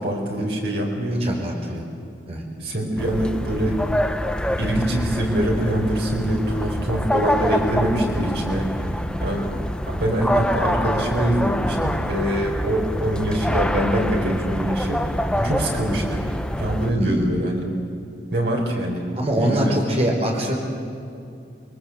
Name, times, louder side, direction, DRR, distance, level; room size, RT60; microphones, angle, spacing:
voice 1, 0.0-1.3 2.6-3.8 4.6-8.7 9.2-9.6 9.9-15.0 15.4-16.2 16.6-17.7 18.3-19.0 19.3-19.8, right 1 dB, 80° right, -1 dB, 4.8 m, -24 dB
voice 2, 1.2-1.8 2.3-2.4 8.8-8.9 15.3-15.5 17.0-17.2 19.1-20.5, right 1 dB, 35° right, 0 dB, 5.1 m, -24 dB
sound 1, 3.0-16.9, equal, 5° left, 0.8 m, -26 dB
29.0 x 21.5 x 8.2 m, 2.5 s
head